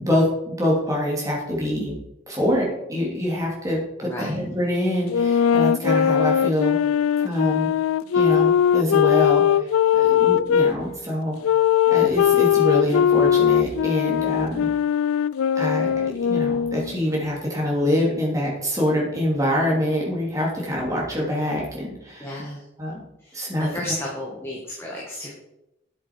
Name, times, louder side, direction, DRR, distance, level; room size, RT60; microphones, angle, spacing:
voice 1, 0.0-1.9 2.3-6.8 7.2-7.7 8.1-9.4 9.9-11.4 11.9-14.7 15.6-22.4 22.8-23.0 23.3-23.8, left 1 dB, 15° right, -3 dB, 3.2 m, -25 dB
voice 2, 4.0-4.4 22.2-22.6 23.2-25.3, left 1 dB, 10° left, -4 dB, 1.8 m, -33 dB
sound 1, 5.1-10.7 11.4-16.9, left 9 dB, 90° left, 0.3 m, -20 dB
9.7 x 8.5 x 4.7 m, 0.88 s
head